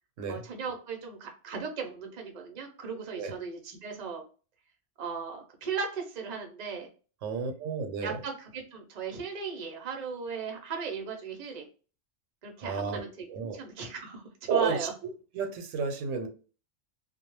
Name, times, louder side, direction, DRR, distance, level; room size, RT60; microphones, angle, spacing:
voice 1, 0.3-4.2 5.0-6.9 8.0-11.7 12.4-13.3 13.5-14.2 14.5-14.9, right 5 dB, 45° right, 2 dB, 0.6 m, -36 dB
voice 2, 7.2-8.2 12.6-13.0 13.3-13.6 14.5-14.9 15.3-16.3, right 5 dB, 85° right, 6 dB, 0.9 m, -31 dB
2.2 x 2.1 x 3.0 m, 0.36 s
omnidirectional pair, 1.3 m